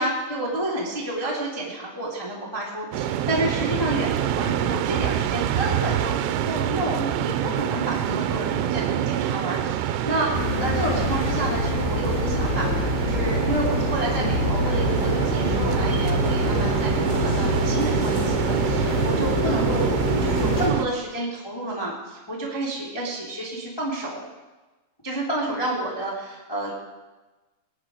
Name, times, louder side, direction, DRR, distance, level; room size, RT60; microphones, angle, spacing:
voice 1, 0.0-24.2 25.0-26.7, right 1 dB, 10° left, -5 dB, 2.0 m, -30 dB
sound 1, 2.9-20.9, right 11 dB, 90° right, 2.9 m, -26 dB
sound 2, 10.3-20.7, left 3 dB, 80° left, 4.2 m, -26 dB
21.0 x 9.5 x 5.0 m, 1.2 s
omnidirectional pair, 4.8 m